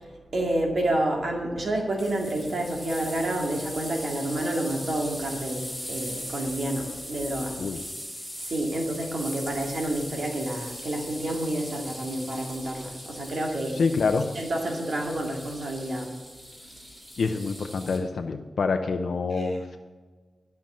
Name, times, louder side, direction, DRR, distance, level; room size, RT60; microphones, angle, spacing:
voice 1, 0.3-7.6 8.4-13.8 14.4-16.1 19.4-19.5, right 1 dB, 65° right, 0 dB, 2.1 m, -29 dB
sound 1, 2.0-18.0, equal, 10° right, 2.9 m, -40 dB
voice 2, 13.7-14.2 17.2-19.8, left 4 dB, 80° left, 5 dB, 0.6 m, -26 dB
12.0 x 5.8 x 7.4 m, 1.4 s
wide cardioid pair, 120°, 0 cm